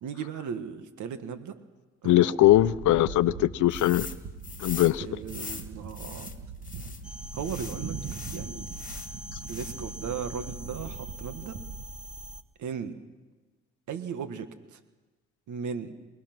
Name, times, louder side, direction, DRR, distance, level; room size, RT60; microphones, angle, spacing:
voice 1, 0.0-1.6 2.0-2.5 4.8-6.3 7.3-8.0 8.3-8.8 9.4-11.6 12.6-13.0 13.9-14.8 15.5-15.9, right 7 dB, 75° right, 9 dB, 1.6 m, -37 dB
voice 2, 2.0-4.1 4.6-5.1 9.3-9.4, left 14 dB, 75° left, 16 dB, 0.7 m, -21 dB
sound 1, 2.4-11.8, right 5 dB, 55° right, 1.8 m, -41 dB
sound 2, 3.7-4.2 4.4-7.0 7.4-9.1 9.4-10.0, left 4 dB, 25° left, 2.0 m, -42 dB
sound 3, 7.0-12.4, equal, 5° right, 1.4 m, -42 dB
27.0 x 19.5 x 6.1 m, 1.2 s
cardioid pair, 90°, 30 cm